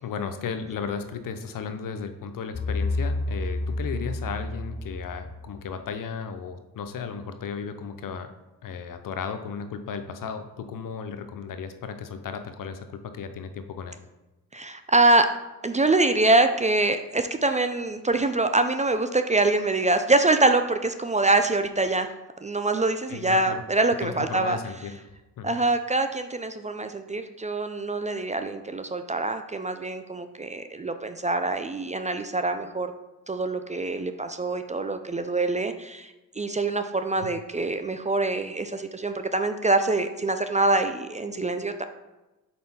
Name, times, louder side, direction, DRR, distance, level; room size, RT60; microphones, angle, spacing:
voice 1, 0.0-8.3 8.6-14.0 23.1-23.6 24.0-25.0 25.4-25.6 37.2-37.3, left 6 dB, 60° left, 8 dB, 0.7 m, -35 dB
sound 1, 2.5-5.7, left 2 dB, 35° left, 2.1 m, -30 dB
voice 2, 14.5-15.3 15.6-22.1 22.4-24.6 25.4-32.9 33.3-41.9, right 2 dB, 20° right, 8 dB, 0.4 m, -24 dB
4.3 x 4.3 x 5.4 m, 1.1 s
supercardioid pair, 60°, 37 cm